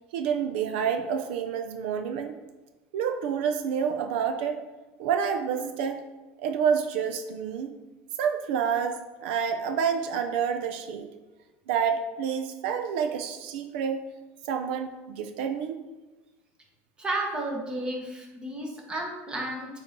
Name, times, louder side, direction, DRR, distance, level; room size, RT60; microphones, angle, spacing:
voice 1, 0.1-2.4 2.9-4.6 5.0-6.0 6.4-7.7 8.2-11.1 11.7-14.0 14.5-15.8, right 7 dB, 90° right, 7 dB, 0.6 m, -28 dB
voice 2, 17.0-19.8, right 1 dB, 15° right, -1 dB, 1.5 m, -32 dB
8.7 x 4.4 x 3.7 m, 1.2 s
cardioid pair, 145°, 6 cm